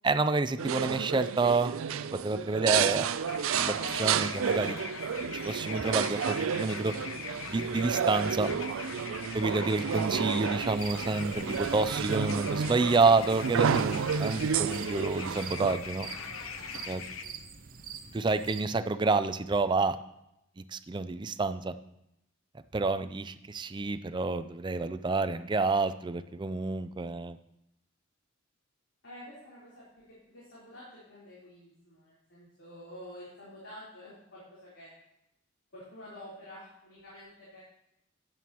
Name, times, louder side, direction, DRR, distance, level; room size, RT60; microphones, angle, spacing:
voice 1, 0.0-1.7 2.1-3.1 3.5-4.8 5.3-6.9 7.5-8.5 9.3-16.1 16.9-17.0 18.1-20.0 20.6-21.7 22.7-27.4, right 3 dB, 25° right, 11 dB, 0.4 m, -29 dB
sound 1, 0.6-15.8, right 7 dB, 85° right, 0.4 m, -31 dB
sound 2, 3.3-17.2, left 5 dB, 80° left, 0.8 m, -42 dB
sound 3, 10.7-18.6, right 5 dB, 45° right, 0.8 m, -45 dB
voice 2, 29.0-34.9 35.7-37.6, left 1 dB, 65° left, -9 dB, 3.6 m, -49 dB
13.0 x 9.2 x 3.0 m, 0.83 s
head